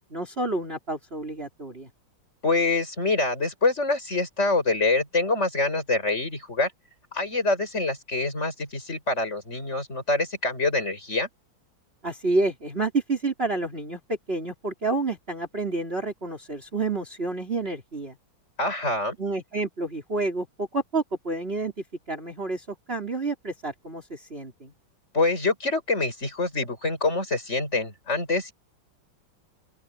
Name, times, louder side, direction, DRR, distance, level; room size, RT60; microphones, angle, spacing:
voice 1, 0.1-1.9 12.0-14.0 14.3-18.2 19.2-21.7 22.1-24.7, right 3 dB, 25° right, 4.7 m, -29 dB
voice 2, 2.4-6.7 7.1-11.3 18.6-19.2 25.1-28.5, left 3 dB, 30° left, 6.3 m, -25 dB
open air
omnidirectional pair, 2.4 m